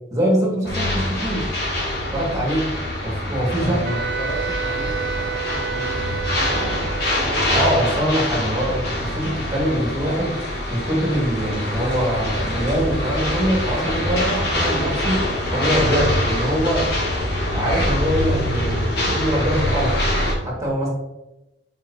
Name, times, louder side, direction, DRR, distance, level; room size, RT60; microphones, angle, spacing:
voice 1, 0.1-1.5 2.1-2.7 3.0-3.8 7.5-10.3 10.7-16.9 17.5-20.0 20.2-20.9, equal, 20° right, -3 dB, 2.2 m, -23 dB
sound 1, 0.6-20.3, left 1 dB, 65° left, 2.0 m, -24 dB
voice 2, 3.6-7.0, equal, 25° left, -1 dB, 0.9 m, -33 dB
Wind instrument woodwind instrument, 3.8-7.3, right 7 dB, 70° right, 0.6 m, -29 dB
7.0 x 5.1 x 3.0 m, 0.95 s
head